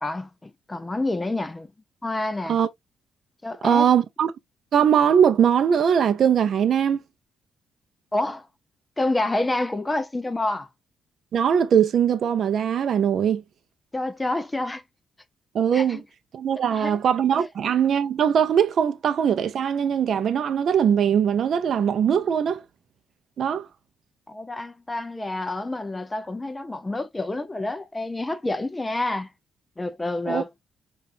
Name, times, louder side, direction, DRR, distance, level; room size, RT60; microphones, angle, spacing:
voice 1, 0.0-1.7 2.0-2.6 3.4-3.9 8.1-8.5 9.0-10.7 13.9-14.8 15.7-16.0 16.7-17.0 17.4-17.5 24.3-29.3 29.8-30.5, left 2 dB, 15° left, 0.4 m, -28 dB
voice 2, 3.6-4.3 4.7-7.0 11.3-13.4 15.5-16.0 16.3-22.6 23.4-23.7 30.3-30.4, right 8 dB, 60° right, 0.4 m, -21 dB
5.0 x 2.3 x 2.5 m
cardioid pair, 110°, 0 cm